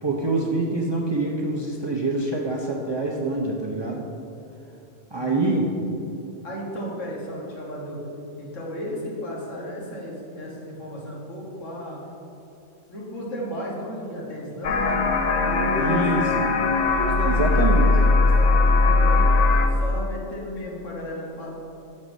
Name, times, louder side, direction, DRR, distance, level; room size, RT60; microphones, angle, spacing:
voice 1, 0.0-4.0 5.1-5.7 15.8-16.4 17.2-17.9, right 2 dB, 35° right, -2 dB, 0.4 m, -25 dB
voice 2, 5.1-5.6 6.4-8.1 8.4-12.0 12.9-15.0 15.4-16.0 16.9-19.3 19.6-21.5, equal, 85° left, -4 dB, 1.8 m, -34 dB
sound 1, 14.6-19.7, left 3 dB, 60° left, 0.4 m, -19 dB
6.5 x 4.3 x 6.1 m, 2.7 s
omnidirectional pair, 1.3 m